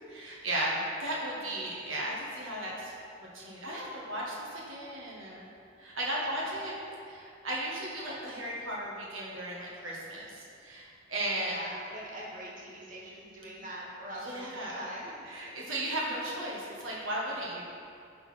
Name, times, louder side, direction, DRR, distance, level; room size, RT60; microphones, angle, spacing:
voice 1, 0.1-5.5 5.8-6.7 7.1-11.7 14.2-14.8 15.2-17.6, right 1 dB, 80° right, -5 dB, 1.8 m, -35 dB
voice 2, 11.4-15.1, equal, 40° right, -5 dB, 1.4 m, -43 dB
10.5 x 4.3 x 5.9 m, 2.4 s
head